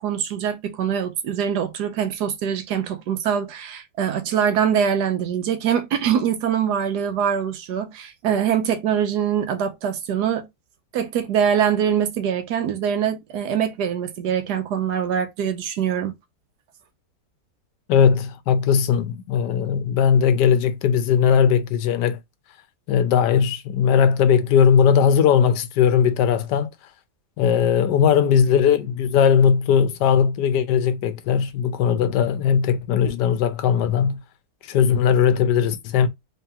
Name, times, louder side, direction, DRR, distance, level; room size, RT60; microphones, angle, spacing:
voice 1, 0.0-10.4 10.9-16.1, right 8 dB, 80° right, 1.3 m, -23 dB
voice 2, 17.9-22.2 22.9-26.7 27.4-34.2 34.6-36.1, left 7 dB, 85° left, 1.3 m, -18 dB
3.5 x 3.0 x 3.5 m
omnidirectional pair, 1.8 m